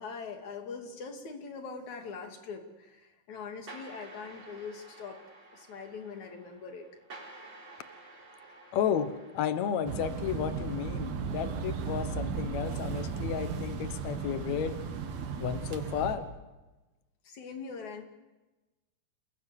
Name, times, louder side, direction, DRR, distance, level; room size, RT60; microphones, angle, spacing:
voice 1, 0.0-5.2 5.5-6.9 17.2-18.0, left 5 dB, 45° left, 4 dB, 3.6 m, -42 dB
sound 1, 3.7-10.5, right 2 dB, 30° right, 4.4 m, -51 dB
voice 2, 8.7-14.8 15.4-16.3, left 9 dB, 85° left, 10 dB, 1.5 m, -32 dB
sound 2, 9.9-16.2, right 5 dB, 65° right, 3.5 m, -35 dB
28.5 x 20.0 x 8.4 m, 1.1 s
omnidirectional pair, 5.0 m